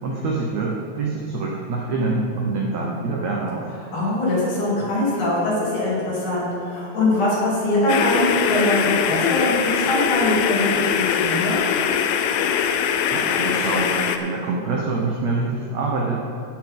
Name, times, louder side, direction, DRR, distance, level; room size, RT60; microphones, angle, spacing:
voice 1, 0.0-3.7 13.1-14.0 14.2-16.2, right 3 dB, 75° right, -2 dB, 1.6 m, -25 dB
voice 2, 3.9-10.7 10.9-11.6, left 1 dB, 55° left, -8 dB, 4.5 m, -22 dB
sound 1, 7.9-14.2, left 8 dB, 80° left, 2.3 m, -22 dB
15.5 x 7.6 x 3.8 m, 2.5 s
omnidirectional pair, 4.4 m